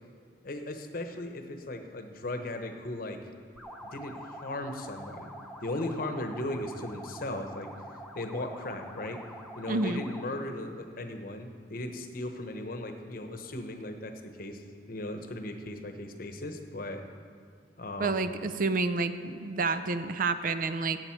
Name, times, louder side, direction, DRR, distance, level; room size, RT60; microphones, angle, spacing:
voice 1, 0.4-3.2 3.8-5.3 5.6-7.7 8.1-9.2 9.5-14.6 14.9-17.0 17.8-18.3, left 1 dB, 55° left, 6 dB, 0.9 m, -37 dB
sound 1, 3.6-10.4, equal, ahead, 0.8 m, -46 dB
voice 2, 9.7-10.0 18.0-21.0, right 3 dB, 50° right, 10 dB, 0.5 m, -29 dB
16.0 x 8.0 x 4.6 m, 2.1 s
head